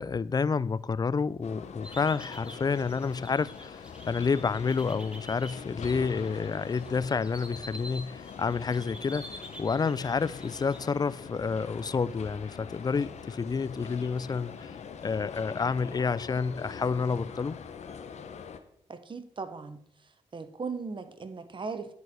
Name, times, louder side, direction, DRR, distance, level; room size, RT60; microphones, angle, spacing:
voice 1, 0.0-14.7 15.0-17.6, left 5 dB, 30° left, 0.4 m, -29 dB
sound 1, 1.4-18.6, left 6 dB, 65° left, 1.0 m, -43 dB
sound 2, 1.8-10.9, equal, 10° right, 2.1 m, -48 dB
voice 2, 18.9-19.8 20.3-21.9, right 4 dB, 40° right, 1.1 m, -38 dB
10.0 x 4.7 x 6.1 m
supercardioid pair, 55°, 13 cm